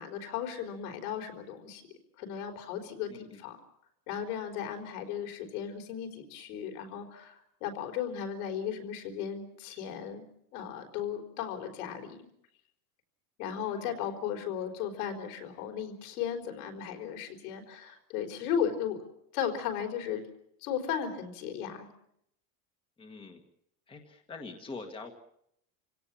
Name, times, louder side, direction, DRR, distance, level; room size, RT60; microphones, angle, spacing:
voice 1, 0.0-1.8 2.2-3.6 4.1-10.2 10.5-12.3 13.4-19.0 19.3-20.2 20.6-21.9, left 8 dB, 75° left, 5 dB, 4.6 m, -36 dB
voice 2, 3.1-3.4 13.7-13.9 23.0-23.4 23.9-25.1, left 3 dB, 10° left, 5 dB, 1.6 m, -44 dB
28.5 x 17.5 x 7.5 m, 0.74 s
cardioid pair, 180°, 46 cm